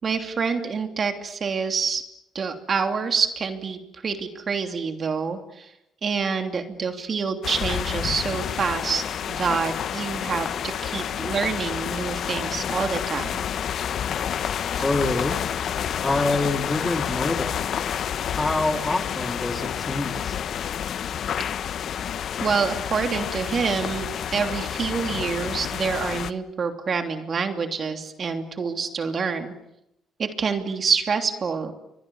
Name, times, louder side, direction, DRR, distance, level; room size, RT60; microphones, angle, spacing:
voice 1, 0.0-2.0 2.3-5.7 6.0-13.4 22.4-29.5 30.2-31.7, right 5 dB, 45° right, 6 dB, 3.0 m, -27 dB
sound 1, 7.4-26.3, left 9 dB, 65° left, 1.1 m, -29 dB
voice 2, 14.8-15.4 16.0-17.6 18.1-20.4, left 2 dB, 20° left, 6 dB, 2.8 m, -26 dB
29.0 x 24.5 x 7.2 m, 0.83 s
cardioid pair, 90°, 0 cm